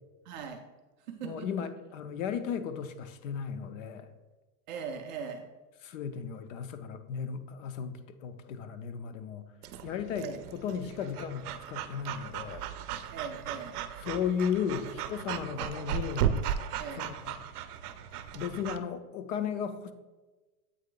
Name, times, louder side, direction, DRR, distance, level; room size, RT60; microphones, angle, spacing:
voice 1, 0.3-0.6 1.1-1.5 4.7-5.5 10.2-10.4 13.1-13.8 15.5-15.7 16.8-17.1, right 6 dB, 35° right, 3 dB, 0.4 m, -40 dB
voice 2, 1.2-4.1 5.8-9.5 9.8-12.6 14.0-16.4 16.9-17.3 18.3-19.9, left 7 dB, 60° left, 9 dB, 0.6 m, -35 dB
Breathing / Dog, 9.6-18.8, right 9 dB, 90° right, 0.6 m, -36 dB
8.0 x 3.2 x 3.7 m, 1.2 s
supercardioid pair, 150°, 44 cm